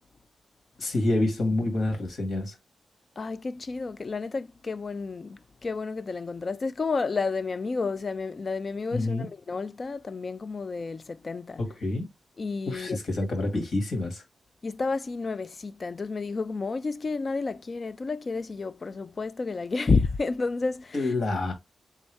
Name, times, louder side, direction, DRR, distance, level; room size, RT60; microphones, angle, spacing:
voice 1, 0.8-2.6 8.9-9.3 11.6-12.1 12.7-14.2 20.9-21.5, left 2 dB, 60° left, 2.2 m, -27 dB
voice 2, 3.2-11.6 12.4-13.0 14.6-21.1, left 4 dB, 40° left, 0.4 m, -30 dB
4.1 x 3.6 x 3.4 m
wide cardioid pair, 115°, 0 cm